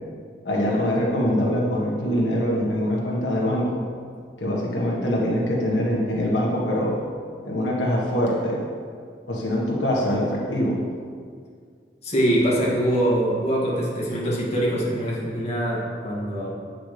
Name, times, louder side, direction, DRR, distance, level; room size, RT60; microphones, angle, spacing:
voice 1, 0.4-3.8 4.4-7.0 7.4-8.6 9.3-10.8, equal, 85° left, -3 dB, 1.6 m, -23 dB
voice 2, 12.0-16.5, right 1 dB, 35° left, -6 dB, 2.2 m, -23 dB
11.0 x 8.2 x 3.3 m, 2.1 s
head